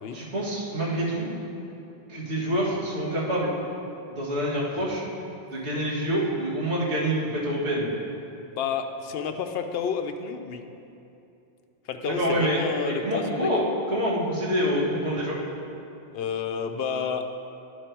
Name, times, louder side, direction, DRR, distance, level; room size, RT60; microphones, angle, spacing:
voice 1, 0.1-1.3 2.1-3.5 4.1-5.0 5.5-7.9 12.0-12.6 12.9-13.6 13.9-15.4, equal, 85° right, -7 dB, 2.1 m, -26 dB
voice 2, 8.5-10.6 11.9-13.5 16.1-17.2, left 6 dB, 70° left, 6 dB, 0.7 m, -30 dB
11.5 x 4.7 x 4.5 m, 2.8 s
omnidirectional pair, 1.1 m